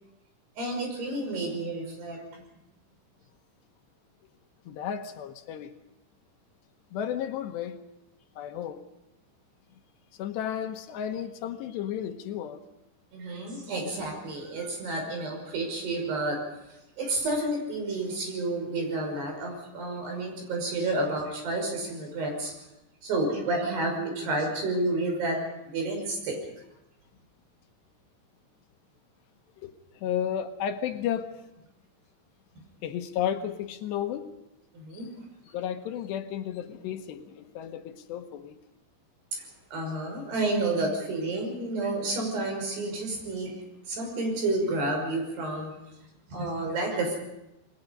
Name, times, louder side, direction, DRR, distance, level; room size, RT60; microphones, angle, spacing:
voice 1, 0.6-2.4 13.1-16.4 17.0-22.5 23.0-26.4 34.7-35.1 39.3-39.5 39.7-43.5 43.9-45.7 46.3-47.2, right 2 dB, 65° right, 2 dB, 7.8 m, -30 dB
voice 2, 4.7-5.7 6.9-7.8 8.4-8.8 10.2-12.6 29.6-29.7 30.0-31.3 32.8-34.3 34.9-35.0 35.5-38.5, left 9 dB, 75° left, 6 dB, 3.1 m, -33 dB
27.5 x 21.5 x 5.5 m, 0.92 s
omnidirectional pair, 5.2 m